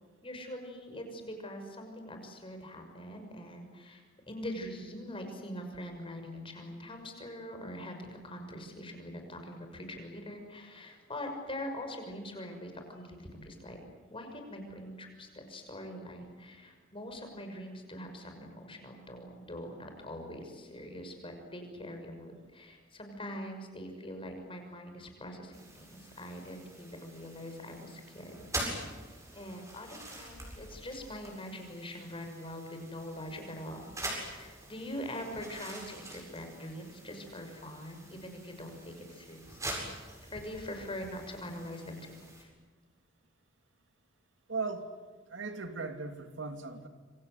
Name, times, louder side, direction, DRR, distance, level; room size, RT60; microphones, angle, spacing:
voice 1, 0.2-13.8 14.1-28.6 28.9-39.9 40.2-42.5, left 1 dB, 30° left, 5 dB, 6.2 m, -43 dB
sound 1, 25.5-42.4, right 1 dB, 15° right, 7.7 m, -45 dB
voice 2, 44.5-44.9 45.3-46.9, right 4 dB, 70° right, 7 dB, 2.6 m, -37 dB
27.5 x 25.5 x 8.2 m, 1.4 s
head